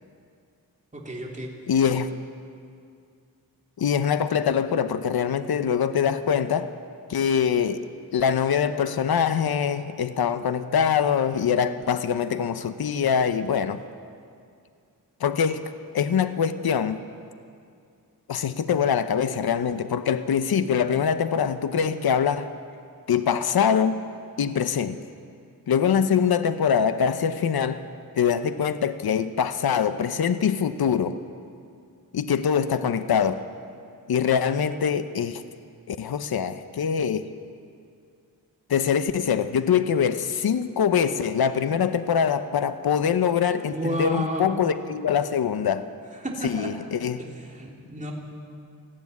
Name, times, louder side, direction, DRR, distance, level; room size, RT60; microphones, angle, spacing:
voice 1, 0.9-1.5 43.7-44.5 46.2-46.7 47.5-48.1, right 1 dB, 20° right, -2 dB, 3.5 m, -31 dB
voice 2, 1.7-2.1 3.8-6.7 7.1-7.8 8.1-13.8 15.2-17.0 18.3-22.5 23.1-24.0 24.4-25.0 25.7-27.8 28.2-31.2 32.1-33.4 34.1-35.4 35.9-37.3 38.7-45.9 46.4-47.2, left 7 dB, 75° left, 11 dB, 0.9 m, -23 dB
19.5 x 14.5 x 9.5 m, 2.3 s
wide cardioid pair, 100°, 37 cm